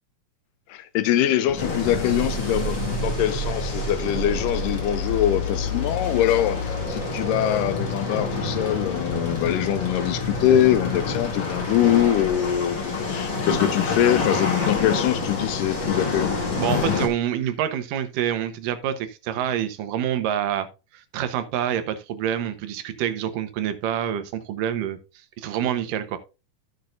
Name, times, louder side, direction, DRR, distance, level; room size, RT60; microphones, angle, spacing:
voice 1, 0.7-16.4, left 11 dB, 85° left, 2.2 m, -23 dB
sound 1, 1.5-12.2, equal, 60° right, 1.4 m, -32 dB
sound 2, 1.6-17.1, left 4 dB, 40° left, 2.3 m, -28 dB
voice 2, 16.6-20.7 20.9-25.0 25.4-26.2, right 10 dB, 80° right, 2.6 m, -27 dB
14.5 x 6.2 x 2.5 m
omnidirectional pair, 3.8 m